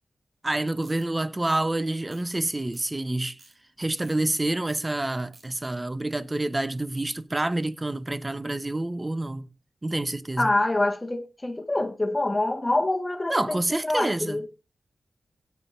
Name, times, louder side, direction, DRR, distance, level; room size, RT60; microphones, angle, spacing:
voice 1, 0.4-3.4 3.8-9.5 9.8-10.5 13.3-14.4, right 2 dB, 25° right, 0.9 m, -28 dB
sound 1, 0.8-1.0 1.4-1.6 2.1-2.4 2.7-2.9 3.2-3.5 4.0-4.2 4.7-4.8 5.1-5.5, right 3 dB, 65° right, 3.4 m, -54 dB
voice 2, 10.4-14.4, left 2 dB, 25° left, 1.6 m, -26 dB
17.0 x 9.4 x 2.6 m
cardioid pair, 45°, 0 cm